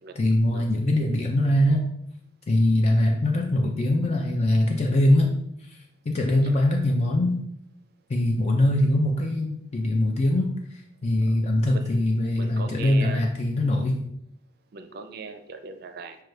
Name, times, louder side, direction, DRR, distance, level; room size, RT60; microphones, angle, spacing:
voice 1, 0.2-1.9 2.5-5.3 5.6-5.8 6.1-7.3 8.1-14.0, left 1 dB, 35° left, 1 dB, 0.4 m, -22 dB
voice 2, 11.7-12.1 12.4-13.3 14.7-16.2, right 5 dB, 55° right, 6 dB, 0.5 m, -39 dB
6.1 x 2.2 x 3.2 m, 0.74 s
head